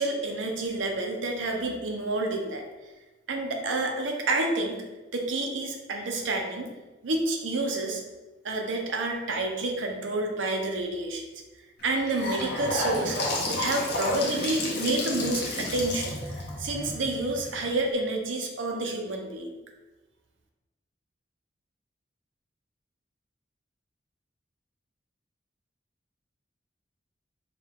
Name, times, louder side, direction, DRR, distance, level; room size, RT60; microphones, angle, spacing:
voice 1, 0.0-2.6 3.3-4.8 5.1-6.7 7.0-8.0 8.4-11.2 11.8-19.6, right 2 dB, 90° right, 2 dB, 0.6 m, -29 dB
Gurgling / Sink (filling or washing) / Bathtub (filling or washing), 11.8-17.9, left 1 dB, 60° left, 0.9 m, -31 dB
4.8 x 2.3 x 3.6 m, 1.1 s
head